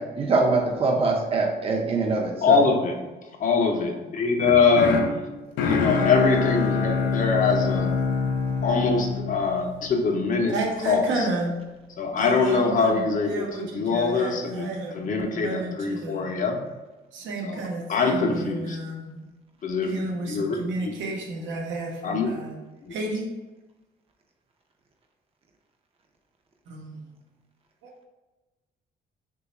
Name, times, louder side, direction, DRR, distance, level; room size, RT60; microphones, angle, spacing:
voice 1, 0.0-2.6, right 3 dB, 30° right, 2 dB, 0.5 m, -23 dB
voice 2, 2.4-2.9 3.4-4.9 5.6-7.9 8.6-10.5 10.9-11.3 12.0-16.6 17.4-17.6 17.9-18.8 19.6-20.9 22.0-22.3 22.8-22.9, left 4 dB, 45° left, 2 dB, 0.6 m, -23 dB
sound 1, 4.4-10.5, left 5 dB, 90° left, 0.5 m, -26 dB
voice 3, 10.5-11.6 12.2-16.2 17.1-19.2 19.9-22.5 22.9-23.3 26.7-27.0 27.8-27.9, right 2 dB, 80° right, 0 dB, 0.7 m, -32 dB
2.9 x 2.3 x 4.1 m, 1.1 s
cardioid pair, 80°, 19 cm